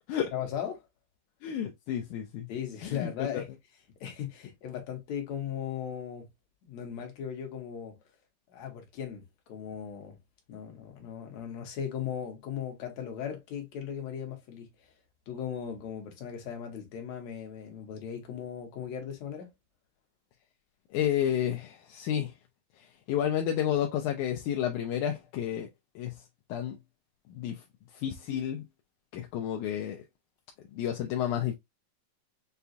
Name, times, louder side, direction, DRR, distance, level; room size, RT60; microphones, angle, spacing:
voice 1, 0.3-0.8 2.5-3.5 4.0-6.3 6.7-8.0 8.5-9.2 9.5-10.2 10.5-14.7 15.3-19.5, left 8 dB, 65° left, 2.3 m, -37 dB
voice 2, 1.4-2.5 2.8-3.4 20.9-22.3 22.8-25.7 26.0-26.1 26.5-26.8 27.3-27.6 27.9-28.6 29.1-30.0 30.7-31.5, left 10 dB, 80° left, 2.0 m, -31 dB
6.8 x 2.3 x 2.5 m
omnidirectional pair, 3.6 m